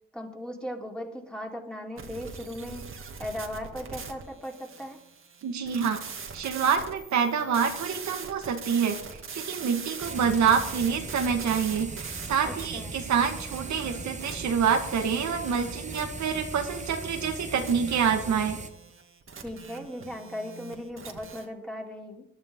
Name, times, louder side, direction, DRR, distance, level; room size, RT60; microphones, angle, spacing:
voice 1, 0.1-2.9 3.2-5.0 12.4-13.0 19.4-22.2, equal, 5° left, 0 dB, 3.3 m, -38 dB
sound 1, 2.0-21.5, right 5 dB, 45° right, 2.2 m, -42 dB
voice 2, 5.4-6.0 6.3-9.0 9.3-18.6, right 7 dB, 65° right, 4 dB, 1.8 m, -27 dB
sound 2, 10.0-18.7, right 3 dB, 25° right, 1.3 m, -39 dB
20.5 x 12.0 x 3.8 m, 0.82 s
cardioid pair, 90°, 30 cm